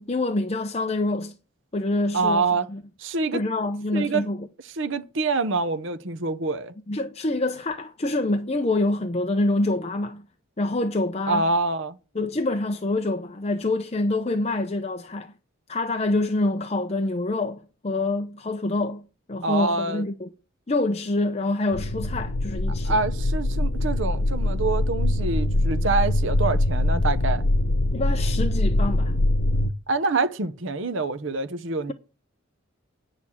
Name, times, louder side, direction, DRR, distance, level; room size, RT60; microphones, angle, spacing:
voice 1, 0.0-1.4 1.7-2.8 3.3-4.5 6.9-10.3 10.6-11.5 12.1-15.3 15.7-20.3 20.7-23.0 27.9-29.2, left 2 dB, 30° left, 0.7 m, -26 dB
voice 2, 2.1-2.7 3.0-3.4 3.9-4.3 4.8-6.7 11.3-12.0 19.4-20.0 22.8-27.4 29.9-31.9, right 3 dB, 65° right, 0.9 m, -26 dB
sound 1, 21.7-29.7, left 1 dB, 85° left, 0.7 m, -23 dB
9.2 x 6.5 x 7.2 m
head